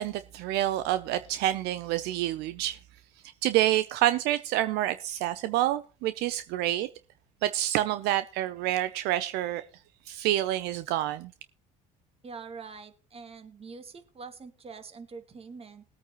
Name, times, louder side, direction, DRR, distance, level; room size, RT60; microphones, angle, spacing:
voice 1, 0.0-2.8 3.4-6.9 7.4-9.6 10.1-11.3, right 14 dB, 70° right, 0.7 m, -28 dB
voice 2, 12.2-15.8, right 5 dB, 35° right, 2.1 m, -44 dB
20.5 x 8.8 x 3.0 m
supercardioid pair, 85°, 18 cm